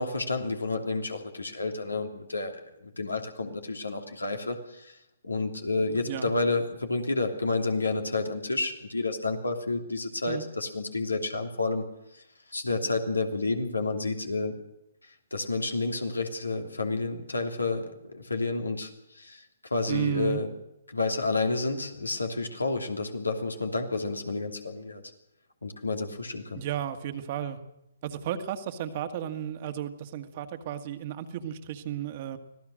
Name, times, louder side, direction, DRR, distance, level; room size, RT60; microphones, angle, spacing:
voice 1, 0.0-5.0 5.2-11.8 12.1-12.2 12.5-14.6 15.3-19.4 19.7-20.5 20.9-25.0 25.6-26.6, left 3 dB, 90° left, 4 dB, 3.0 m, -30 dB
voice 2, 19.9-20.4 26.6-27.6 28.0-32.4, right 10 dB, 40° right, 7 dB, 1.8 m, -33 dB
25.0 x 16.5 x 6.5 m, 0.86 s
figure-of-eight pair, 130°, 0 cm